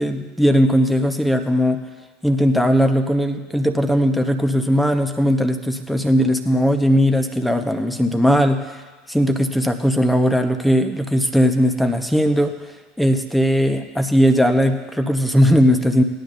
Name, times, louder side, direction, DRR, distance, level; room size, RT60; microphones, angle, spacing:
voice 1, 0.0-1.8 2.2-8.8 9.1-12.6 13.0-16.0, equal, 5° left, 6 dB, 1.1 m, -18 dB
19.0 x 10.5 x 2.6 m, 1.3 s
figure-of-eight pair, 75°, 0 cm